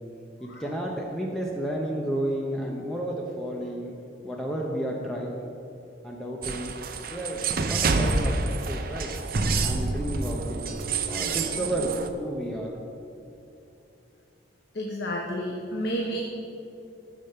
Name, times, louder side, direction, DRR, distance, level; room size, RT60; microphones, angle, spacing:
voice 1, 0.4-3.9 4.2-5.5 6.0-6.7 7.1-9.1 9.6-10.7 11.0-12.7, right 1 dB, ahead, -2 dB, 0.7 m, -32 dB
sound 1, 6.4-12.1, right 3 dB, 45° right, 0.6 m, -28 dB
voice 2, 14.7-16.2, equal, 55° left, 0 dB, 0.9 m, -31 dB
14.5 x 5.2 x 5.6 m, 2.8 s
head